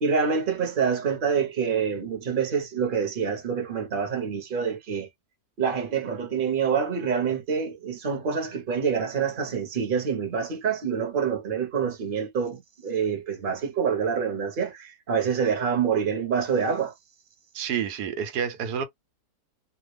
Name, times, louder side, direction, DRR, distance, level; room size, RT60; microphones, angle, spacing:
voice 1, 0.0-5.1 5.6-16.9, right 6 dB, 40° right, 1.0 m, -26 dB
voice 2, 17.5-18.8, right 8 dB, 90° right, 1.2 m, -29 dB
2.7 x 2.3 x 3.2 m
omnidirectional pair, 1.7 m